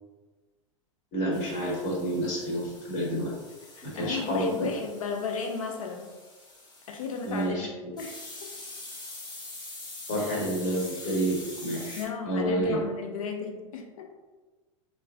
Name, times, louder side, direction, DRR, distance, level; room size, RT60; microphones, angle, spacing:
voice 1, 1.1-3.3 3.8-4.7 7.2-7.7 10.1-12.0 12.2-12.8, right 1 dB, 50° left, -3 dB, 1.0 m, -29 dB
sound 1, 1.3-7.5 8.0-12.1, left 2 dB, 25° left, 0.7 m, -45 dB
voice 2, 3.8-6.2 6.9-7.7 8.0-8.5 11.9-14.1, left 5 dB, 85° left, 3 dB, 0.4 m, -35 dB
3.0 x 2.4 x 2.3 m, 1.3 s
hypercardioid pair, 100°, 17 cm